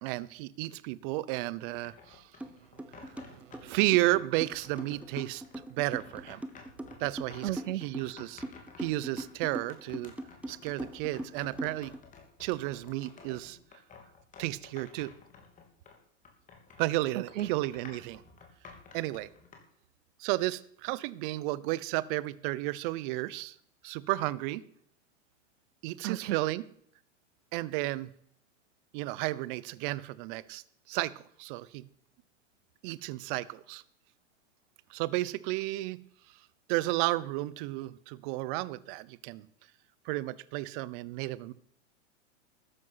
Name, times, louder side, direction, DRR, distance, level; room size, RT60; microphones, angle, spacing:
voice 1, 0.0-2.3 3.0-3.1 3.6-5.4 5.7-6.4 7.0-7.5 7.8-8.4 8.8-10.1 10.5-11.9 12.4-13.6 14.4-15.1 16.8-18.2 18.9-19.3 20.2-23.6 23.8-24.6 25.8-26.6 27.5-28.1 28.9-30.6 30.9-31.9 32.8-33.8 34.9-36.0 36.7-39.5 40.0-41.5, right 18 dB, 45° right, 0.9 m, -32 dB
sound 1, 1.7-4.1 4.5-16.0 16.2-19.6, left 5 dB, 20° left, 3.2 m, -53 dB
sound 2, 2.4-2.5 2.8-12.0, right 1 dB, 5° right, 1.0 m, -40 dB
voice 2, 2.5-3.8 7.4-7.9 17.3-17.5 26.0-26.4, right 14 dB, 85° right, 0.6 m, -37 dB
13.5 x 11.0 x 5.8 m
hypercardioid pair, 135°, 36 cm